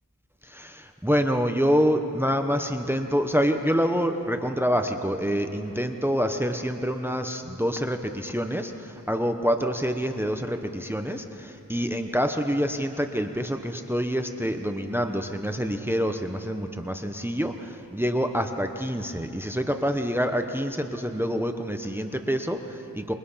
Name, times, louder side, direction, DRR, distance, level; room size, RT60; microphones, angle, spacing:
voice 1, 0.4-23.1, equal, 5° right, 6 dB, 1.0 m, -26 dB
27.5 x 22.5 x 5.7 m, 2.9 s
wide cardioid pair, 75°, 37 cm